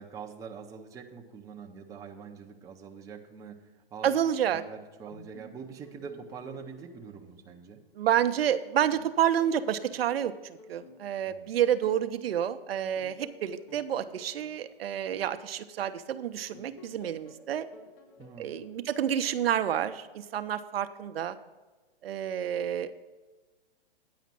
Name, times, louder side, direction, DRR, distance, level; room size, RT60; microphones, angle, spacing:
voice 1, 0.0-4.1 4.5-7.8 11.3-11.5 18.2-18.5, right 6 dB, 10° right, 1 dB, 0.6 m, -44 dB
voice 2, 4.0-4.6 7.9-17.7 18.4-21.4 22.0-23.0, right 10 dB, 75° right, 10 dB, 0.7 m, -29 dB
sound 1, 5.1-8.4 8.9-12.2 12.7-16.0 16.5-19.8, left 3 dB, 70° left, 1.7 m, -55 dB
9.4 x 5.0 x 7.4 m, 1.2 s
hypercardioid pair, 140°, 30 cm